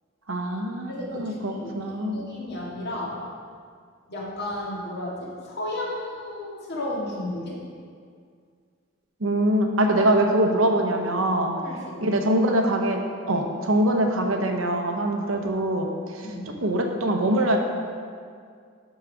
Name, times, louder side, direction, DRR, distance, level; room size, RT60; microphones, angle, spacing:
voice 1, 0.3-2.2 9.2-11.5 12.0-16.3 16.6-17.6, right 1 dB, 75° right, 3 dB, 0.9 m, -23 dB
voice 2, 0.9-3.2 4.1-7.6 9.8-9.9 11.6-12.2 15.4-15.5 16.2-16.5, left 1 dB, 55° left, -5 dB, 1.9 m, -33 dB
12.0 x 4.1 x 5.0 m, 2.1 s
head